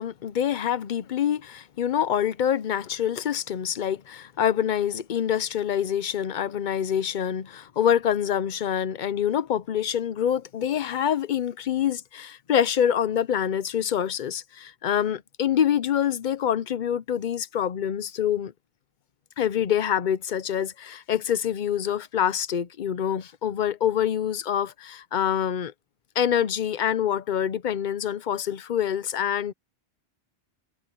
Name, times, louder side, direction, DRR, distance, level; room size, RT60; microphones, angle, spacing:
voice 1, 0.0-18.5 19.4-25.7 26.2-29.5, left 9 dB, 55° left, 0.7 m, -26 dB
omnidirectional pair, 1.1 m